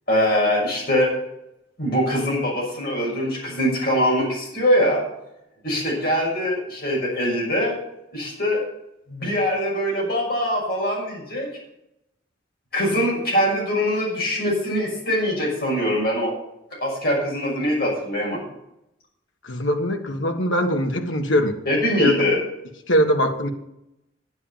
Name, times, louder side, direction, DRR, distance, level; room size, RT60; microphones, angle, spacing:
voice 1, 0.1-1.1 1.8-5.0 5.6-7.7 8.1-8.6 9.1-11.5 12.7-16.3 16.8-18.4 21.6-22.4, equal, 50° left, -3 dB, 6.2 m, -22 dB
voice 2, 19.4-21.6 22.0-22.1 22.9-23.5, equal, 85° left, 4 dB, 1.6 m, -21 dB
10.5 x 8.1 x 7.4 m, 0.84 s
head